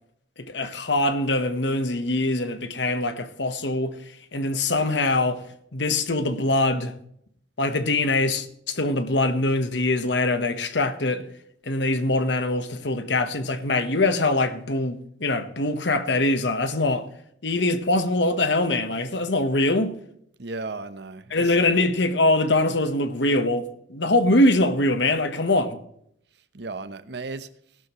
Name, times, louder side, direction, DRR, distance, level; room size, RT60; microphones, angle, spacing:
voice 1, 0.4-3.9 4.3-5.4 5.7-6.9 7.6-11.3 11.6-17.1 17.4-20.0 21.3-25.8, left 2 dB, 85° left, 1.2 m, -23 dB
voice 2, 20.4-21.6 26.5-27.5, right 3 dB, 70° right, 0.8 m, -35 dB
17.0 x 12.0 x 3.1 m
head